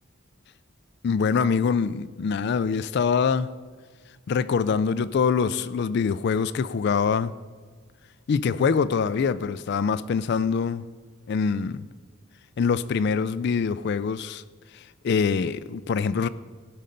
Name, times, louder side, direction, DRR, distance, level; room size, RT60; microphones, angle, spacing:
voice 1, 1.0-3.5 4.3-7.4 8.3-10.9 11.3-11.9 12.6-14.4 14.7-16.3, left 5 dB, 50° left, 0.3 m, -24 dB
16.5 x 5.6 x 5.1 m
head